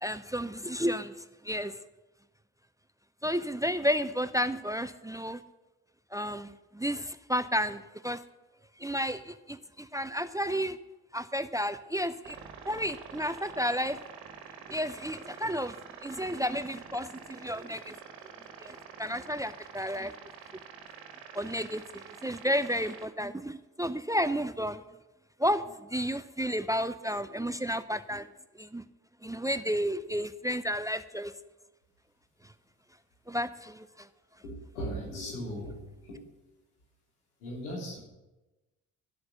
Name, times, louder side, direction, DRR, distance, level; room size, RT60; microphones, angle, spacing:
voice 1, 0.0-1.1 1.4-1.8 3.2-5.4 6.1-8.2 8.8-10.8 11.1-12.4 12.7-14.0 14.7-18.0 18.6-20.1 21.3-21.8 22.2-24.8 25.4-28.3 28.6-28.8 29.2-31.3 33.3-34.1, equal, 10° right, 13 dB, 0.6 m, -32 dB
sound 1, 12.2-23.0, right 6 dB, 55° right, 1.7 m, -47 dB
voice 2, 34.4-36.3 37.4-38.0, equal, 90° left, -3 dB, 3.6 m, -38 dB
12.5 x 8.0 x 6.6 m, 1.0 s
hypercardioid pair, 45°, 43 cm